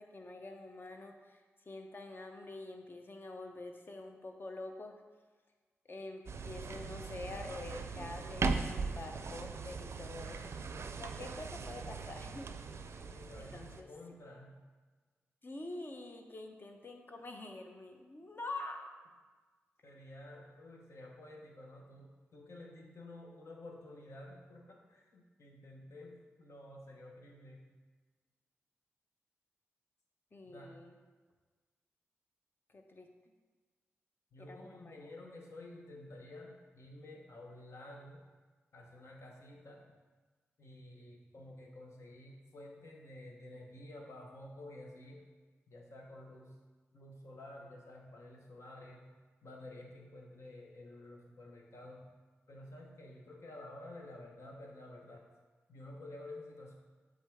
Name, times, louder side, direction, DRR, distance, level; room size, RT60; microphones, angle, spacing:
voice 1, 0.0-1.4 1.7-4.9 5.9-10.4 11.0-12.5 12.8-13.0 13.4-13.9 15.4-18.9 30.3-30.9 32.7-33.1 34.5-35.0, left 2 dB, 45° left, 4 dB, 0.8 m, -46 dB
sound 1, 6.3-13.8, right 4 dB, 60° right, 0.4 m, -39 dB
voice 2, 13.0-14.6 19.8-27.7 30.5-30.8 34.3-38.2 38.7-39.9 40.6-45.3 45.7-46.6 46.9-49.1 49.4-52.1 52.5-55.3 55.7-56.7, left 1 dB, 70° left, 0 dB, 1.1 m, -51 dB
7.2 x 3.7 x 3.6 m, 1.4 s
cardioid pair, 50°, 5 cm